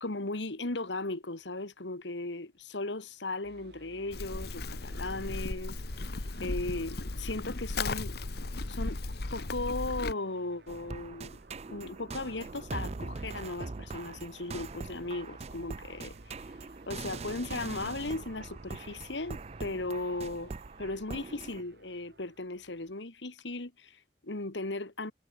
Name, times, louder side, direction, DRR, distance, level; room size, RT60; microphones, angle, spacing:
voice 1, 0.0-8.2 8.7-9.0 9.3-11.4 11.7-16.5 16.9-20.5 20.8-25.1, left 2 dB, 85° left, 2.1 m, -37 dB
sound 1, 3.4-22.9, right 1 dB, 65° right, 2.6 m, -56 dB
Livestock farm animals working animals, 4.1-10.1, left 2 dB, 60° left, 1.2 m, -36 dB
sound 2, 10.7-21.6, right 3 dB, 35° right, 0.5 m, -42 dB
head